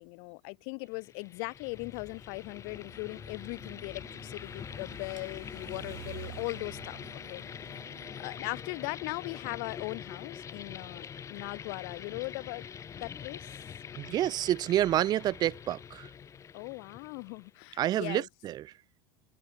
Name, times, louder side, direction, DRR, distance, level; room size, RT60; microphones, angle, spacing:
voice 1, 0.0-7.0 7.3-7.4 8.2-12.7 12.9-13.5 16.5-18.3, left 40 dB or more, 70° left, 0.8 m, -39 dB
sound 1, 0.9-17.6, left 7 dB, 25° left, 0.9 m, -45 dB
sound 2, 2.6-8.9, right 21 dB, 85° right, 0.9 m, -51 dB
voice 2, 14.0-16.1 17.8-18.6, right 13 dB, 35° right, 0.4 m, -28 dB
supercardioid pair, 130°, 12 cm